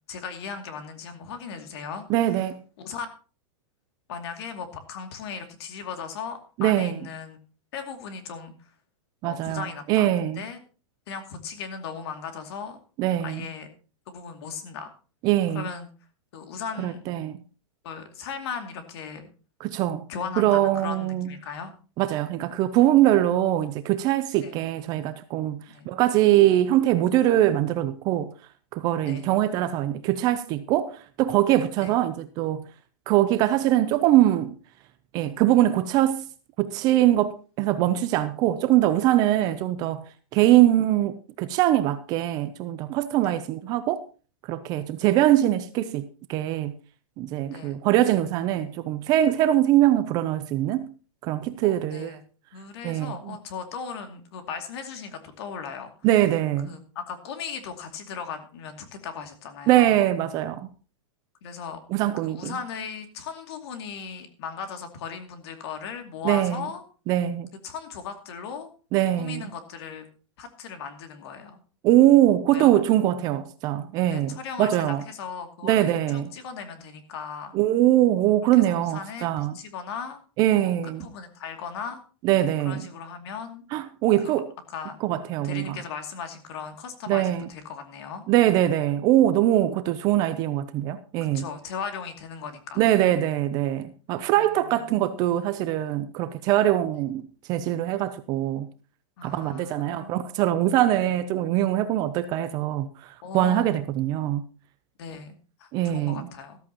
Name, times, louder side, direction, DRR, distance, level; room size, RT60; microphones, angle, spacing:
voice 1, 0.1-2.4 2.8-3.1 4.1-7.4 7.7-8.7 9.2-10.1 10.3-10.6 11.1-12.8 13.2-13.7 14.1-14.9 15.5-15.9 16.3-17.0 17.8-19.3 20.1-21.7 24.4-24.6 25.7-25.9 29.0-29.3 31.8-32.0 40.4-40.5 43.2-43.4 47.5-47.8 51.6-52.2 52.5-55.9 56.7-60.1 61.4-61.8 62.2-66.8 67.6-68.7 69.1-70.1 70.4-71.6 72.5-72.8 74.1-77.5 78.6-80.2 80.5-82.0 82.6-83.6 84.2-84.3 84.7-85.0 85.4-88.2 91.3-92.8 94.3-95.0 99.2-100.2 103.2-103.8 105.0-106.6, left 6 dB, 50° left, 2.5 m, -37 dB
voice 2, 2.1-2.6 6.6-7.0 9.2-10.4 13.0-13.4 15.2-15.6 16.8-17.4 19.6-20.1 20.4-21.3 22.0-28.3 28.7-32.7 33.1-34.5 35.1-36.3 36.6-40.0 40.3-44.0 44.5-46.7 47.2-50.9 51.2-52.2 52.8-53.4 56.0-56.7 59.7-60.7 61.9-62.5 66.2-66.6 67.1-67.5 68.9-69.4 71.8-75.0 75.6-76.3 77.5-79.5 80.4-81.1 82.2-82.8 83.7-84.5 85.0-85.8 87.1-87.5 88.3-91.5 92.8-98.7 99.2-104.4 105.7-106.3, right 13 dB, 20° right, 0.5 m, -22 dB
14.0 x 13.5 x 2.9 m
supercardioid pair, 165°, 17 cm